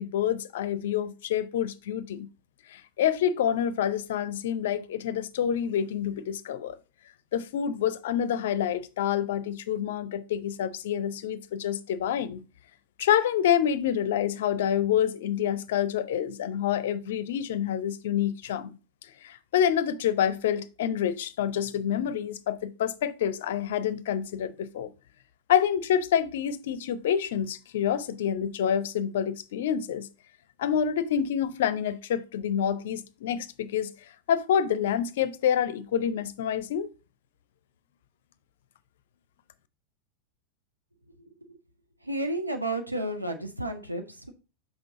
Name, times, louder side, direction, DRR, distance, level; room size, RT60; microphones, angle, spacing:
voice 1, 0.0-2.3 2.7-6.8 7.3-12.4 13.0-18.7 19.2-24.9 25.5-30.1 30.6-33.9 34.3-36.9, left 9 dB, 55° left, 0.5 m, -27 dB
voice 2, 42.0-44.3, right 1 dB, 85° right, 0.7 m, -31 dB
6.1 x 5.0 x 3.6 m
figure-of-eight pair, 90°, 0 cm